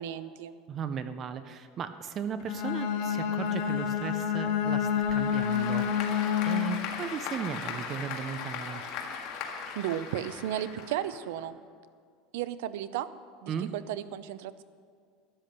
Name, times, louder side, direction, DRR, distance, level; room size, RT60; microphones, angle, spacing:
voice 1, 0.0-0.5 9.8-11.6 12.3-13.1 13.4-14.6, right 11 dB, 80° right, 14 dB, 0.6 m, -34 dB
voice 2, 0.7-8.8 13.5-13.7, right 7 dB, 30° right, 11 dB, 0.5 m, -36 dB
Bowed string instrument, 2.4-6.9, left 8 dB, 75° left, 1.4 m, -28 dB
Applause / Crowd, 4.9-11.4, left 6 dB, 55° left, 1.8 m, -39 dB
13.0 x 10.5 x 6.7 m, 2.1 s
cardioid pair, 170°, 0 cm